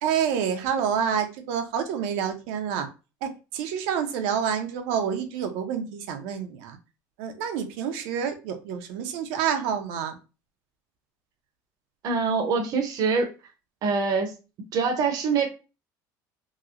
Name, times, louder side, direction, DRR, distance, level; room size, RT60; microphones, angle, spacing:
voice 1, 0.0-2.9 3.2-6.8 7.2-10.2, right 8 dB, 85° right, 6 dB, 0.7 m, -28 dB
voice 2, 12.0-13.3 13.8-14.3 14.7-15.5, right 5 dB, 50° right, 4 dB, 0.7 m, -24 dB
3.0 x 2.8 x 2.5 m, 0.30 s
cardioid pair, 135°, 8 cm